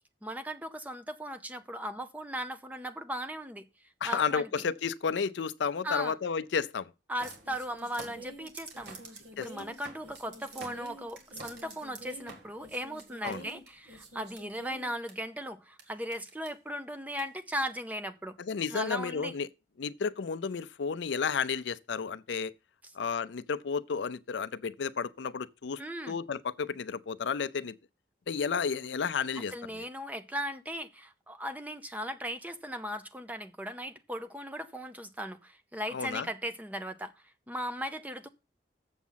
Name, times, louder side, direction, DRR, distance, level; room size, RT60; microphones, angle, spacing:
voice 1, 0.2-3.7 4.0-4.5 5.8-6.1 7.1-9.0 9.4-18.4 18.7-19.3 25.8-26.2 29.3-38.3, equal, 10° right, 0.6 m, -37 dB
voice 2, 4.0-6.9 9.4-9.5 13.2-13.4 18.4-19.5 19.8-22.5 23.0-25.8 26.1-27.7 28.3-29.8 35.9-36.3, left 6 dB, 80° left, 0.5 m, -32 dB
sound 1, 7.2-15.1 15.8-15.9 16.1-16.5 17.2-17.3, right 2 dB, 70° right, 1.9 m, -47 dB
7.2 x 7.2 x 5.6 m
head